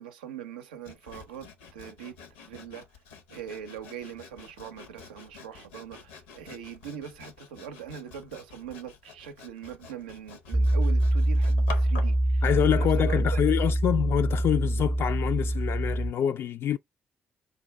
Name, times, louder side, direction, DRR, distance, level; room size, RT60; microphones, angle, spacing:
voice 1, 0.0-2.2 2.4-2.9 3.3-12.4 12.8-13.4, right 9 dB, 80° right, 0.5 m, -41 dB
Sawing, 0.8-12.2, left 5 dB, 80° left, 0.7 m, -47 dB
Piano, 10.5-16.1, right 1 dB, 20° right, 0.6 m, -25 dB
voice 2, 12.4-16.8, left 10 dB, 55° left, 0.3 m, -26 dB
5.2 x 2.3 x 3.2 m
figure-of-eight pair, 40°, 5 cm